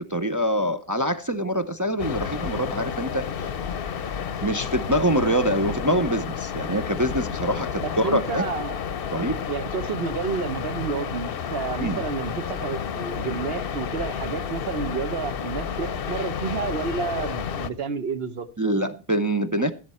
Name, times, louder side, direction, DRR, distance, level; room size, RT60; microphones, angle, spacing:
voice 1, 0.1-3.5 4.4-8.5 9.1-9.5 11.8-12.0 18.6-19.7, right 1 dB, 25° right, 0.4 m, -25 dB
sound 1, 2.0-17.7, left 7 dB, 55° left, 0.9 m, -31 dB
voice 2, 7.8-8.8 9.5-18.8, right 5 dB, 55° right, 1.2 m, -30 dB
15.0 x 8.0 x 4.2 m
omnidirectional pair, 1.2 m